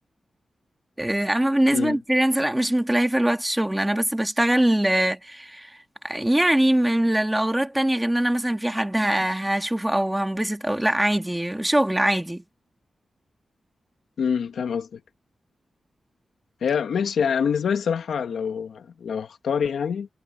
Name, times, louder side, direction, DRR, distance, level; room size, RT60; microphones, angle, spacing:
voice 1, 1.0-5.8 6.0-12.4, right 1 dB, 10° right, 2.5 m, -22 dB
voice 2, 14.2-15.0 16.6-20.1, left 7 dB, 85° left, 2.0 m, -25 dB
cardioid pair, 65°, 0 cm